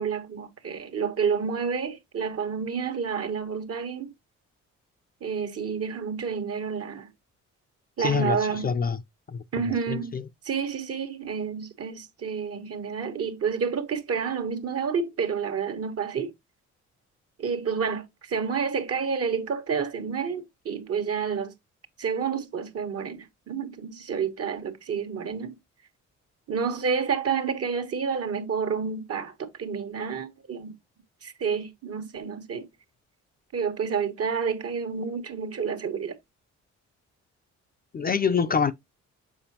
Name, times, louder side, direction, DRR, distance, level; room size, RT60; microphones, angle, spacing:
voice 1, 0.0-4.1 5.2-7.1 8.0-8.7 9.5-10.2 10.4-16.3 17.4-21.5 22.0-25.6 26.5-30.7 31.2-32.7 33.5-36.1, right 6 dB, 50° right, 1.3 m, -29 dB
voice 2, 8.0-9.0 9.3-10.2 37.9-38.7, left 6 dB, 30° left, 0.5 m, -26 dB
7.2 x 4.6 x 2.8 m
cardioid pair, 90°, 30 cm